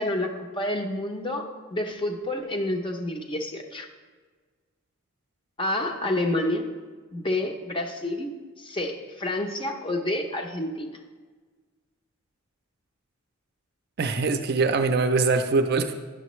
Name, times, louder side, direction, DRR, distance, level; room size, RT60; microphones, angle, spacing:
voice 1, 0.0-3.9 5.6-6.7 7.1-8.3 8.6-10.9, left 1 dB, 25° left, 3 dB, 0.7 m, -29 dB
voice 2, 14.0-15.9, right 4 dB, 45° right, 6 dB, 0.4 m, -23 dB
10.0 x 6.7 x 3.1 m, 1.4 s
head